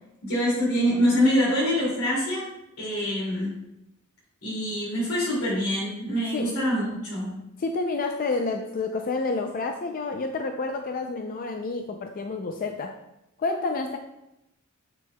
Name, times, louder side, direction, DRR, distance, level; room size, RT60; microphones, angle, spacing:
voice 1, 0.2-2.5 2.8-3.6 4.4-7.4, equal, 80° left, -6 dB, 2.4 m, -25 dB
voice 2, 7.6-12.9 13.4-14.0, left 3 dB, 40° left, 5 dB, 0.4 m, -29 dB
9.1 x 5.2 x 2.2 m, 0.87 s
head